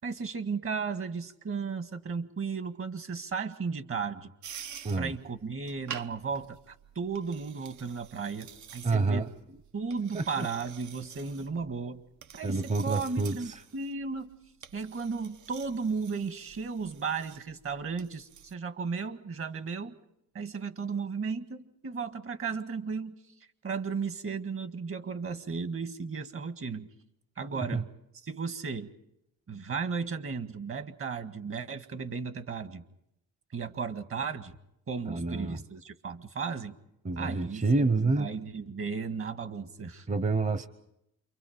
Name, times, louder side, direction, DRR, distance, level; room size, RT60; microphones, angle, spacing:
voice 1, 0.0-4.3 5.0-9.3 9.7-12.0 12.3-14.3 14.7-19.9 20.3-23.2 23.6-26.9 27.4-27.8 28.2-28.9 29.5-32.8 33.5-34.6 34.9-36.7 37.2-40.1, right 5 dB, 45° right, 10 dB, 1.7 m, -35 dB
sound 1, 4.4-18.5, right 8 dB, 75° right, 1.0 m, -49 dB
voice 2, 8.8-9.3 10.1-10.5 12.4-13.6 27.5-27.8 35.1-35.6 37.0-38.3 40.1-40.7, right 3 dB, 25° right, 13 dB, 0.9 m, -28 dB
28.5 x 24.0 x 5.1 m, 0.81 s
cardioid pair, 90°, 30 cm